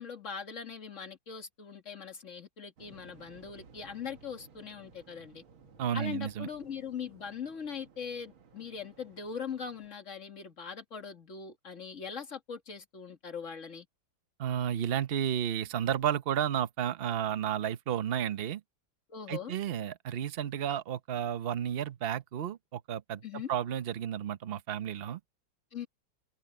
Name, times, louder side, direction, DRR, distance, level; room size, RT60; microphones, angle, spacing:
voice 1, 0.0-5.4 5.9-13.9 19.1-19.6 23.2-23.5 25.7-25.9, left 6 dB, 40° left, 2.3 m, -41 dB
Waves surf, 2.8-9.9, right 5 dB, 80° right, 2.6 m, -58 dB
voice 2, 5.8-6.5 14.4-18.6 19.3-25.2, right 9 dB, 60° right, 0.6 m, -32 dB
omnidirectional pair, 2.2 m